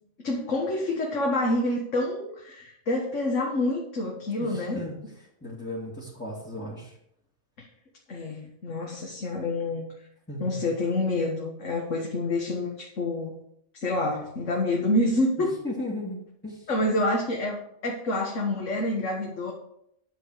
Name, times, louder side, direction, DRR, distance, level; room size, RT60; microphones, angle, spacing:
voice 1, 0.2-4.8 7.6-7.7 8.1-9.9 10.4-13.3 13.7-15.5 16.7-19.5, left 2 dB, 90° left, -1 dB, 1.9 m, -27 dB
voice 2, 4.4-4.9 5.4-7.0 10.3-10.5 15.6-16.6, left 1 dB, 10° left, -6 dB, 2.3 m, -36 dB
10.5 x 7.9 x 4.9 m, 0.74 s
omnidirectional pair, 1.3 m